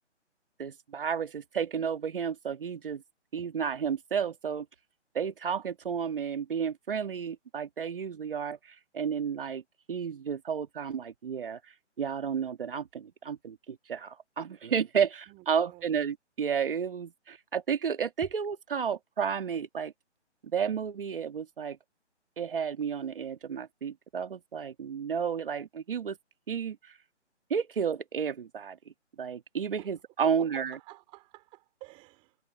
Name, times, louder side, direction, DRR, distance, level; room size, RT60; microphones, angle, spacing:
voice 1, 0.6-3.0 3.3-4.7 5.1-9.6 9.9-11.6 12.0-19.9 20.5-21.8 22.4-26.2 26.5-26.9 27.5-28.8 29.2-30.8, right 7 dB, 50° right, 2.0 m, -32 dB
voice 2, 15.3-16.0 29.8-30.0 30.2-32.4, right 23 dB, 15° right, 3.5 m, -49 dB
figure-of-eight pair, 155°, 35 cm